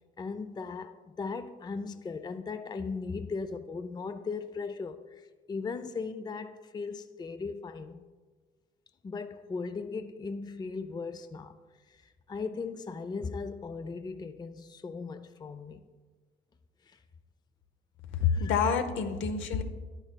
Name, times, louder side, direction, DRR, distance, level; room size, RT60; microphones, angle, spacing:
voice 1, 0.2-8.0 9.0-11.6 11.9-15.9 16.9-17.0 18.2-18.5 19.2-19.3, left 4 dB, 20° left, 0.4 m, -38 dB
voice 2, 18.2-19.6, left 6 dB, 80° left, 0.7 m, -27 dB
10.5 x 8.9 x 2.2 m
cardioid pair, 90°, 20 cm